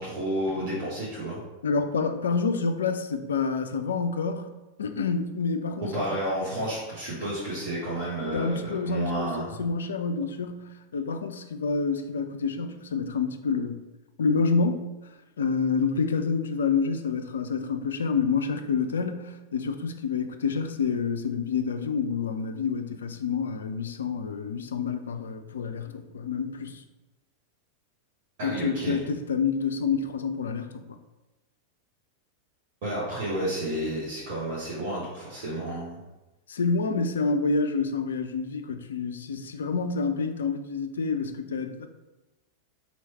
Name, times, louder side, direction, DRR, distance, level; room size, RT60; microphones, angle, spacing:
voice 1, 0.0-1.4 5.8-9.6 28.4-29.0 32.8-36.0, right 1 dB, 50° right, -7 dB, 1.0 m, -31 dB
voice 2, 1.6-4.5 4.8-6.1 8.3-13.8 14.2-14.9 15.4-26.8 28.4-30.8 36.5-41.9, left 5 dB, 65° left, 8 dB, 0.3 m, -28 dB
3.1 x 2.9 x 4.1 m, 1.1 s
figure-of-eight pair, 90°, 0 cm